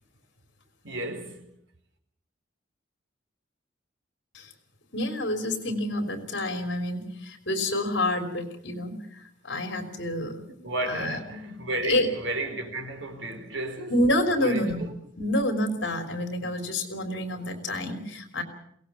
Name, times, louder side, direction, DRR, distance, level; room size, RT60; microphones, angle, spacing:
voice 1, 0.8-1.4 10.6-14.0 14.4-14.7, right 1 dB, 75° right, 4.0 m, -33 dB
voice 2, 4.9-10.5 10.9-11.2 11.8-12.1 13.9-14.9 15.2-18.4, left 1 dB, 65° left, 3.5 m, -28 dB
22.5 x 18.5 x 7.0 m
head